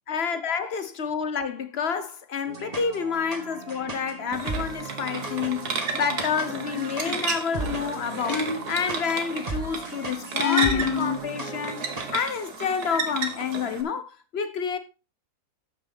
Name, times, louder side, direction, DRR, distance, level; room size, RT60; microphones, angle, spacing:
voice 1, 0.1-11.8 12.1-14.8, left 6 dB, 45° left, 1.2 m, -29 dB
sound 1, 2.5-12.2, right 2 dB, 25° right, 2.1 m, -37 dB
sound 2, 4.3-13.8, right 4 dB, 75° right, 2.1 m, -33 dB
sound 3, 7.1-7.5 8.3-9.2 10.4-11.2, left 8 dB, 75° left, 1.6 m, -26 dB
13.0 x 6.2 x 4.1 m
omnidirectional pair, 1.7 m